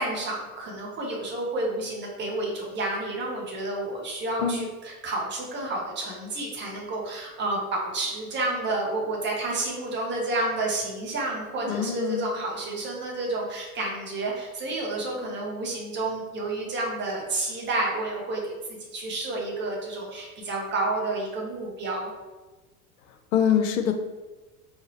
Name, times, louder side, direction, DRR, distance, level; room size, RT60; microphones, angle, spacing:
voice 1, 0.0-22.1, right 2 dB, 25° right, -2 dB, 1.2 m, -30 dB
voice 2, 11.7-12.3 23.3-23.9, left 8 dB, 60° left, 6 dB, 0.7 m, -24 dB
4.7 x 2.7 x 3.2 m, 1.2 s
figure-of-eight pair, 85°, 44 cm